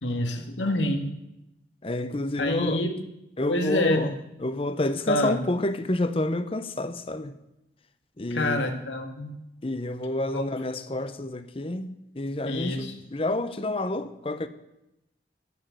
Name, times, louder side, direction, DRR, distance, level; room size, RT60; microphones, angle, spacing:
voice 1, 0.0-1.1 2.4-2.9 3.5-4.0 5.1-5.4 8.3-9.3 10.3-10.4 12.4-13.1, left 1 dB, 85° left, 1.9 m, -27 dB
voice 2, 1.8-2.8 3.4-7.3 8.2-8.7 9.6-14.5, left 1 dB, 30° left, 0.7 m, -29 dB
14.0 x 6.5 x 8.1 m
head